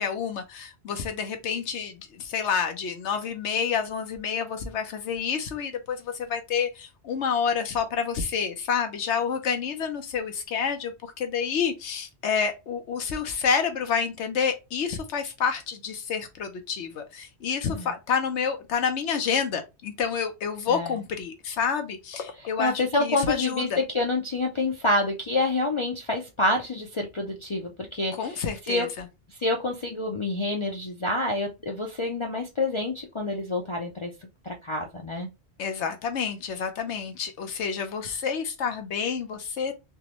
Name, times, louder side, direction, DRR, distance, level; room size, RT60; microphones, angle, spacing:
voice 1, 0.0-23.8 28.1-29.1 35.6-39.7, left 6 dB, 90° left, 1.1 m, -29 dB
voice 2, 22.6-28.2 28.7-28.9 29.4-34.1 34.4-35.3, left 2 dB, 40° left, 0.5 m, -27 dB
3.6 x 3.0 x 3.0 m
omnidirectional pair, 1.1 m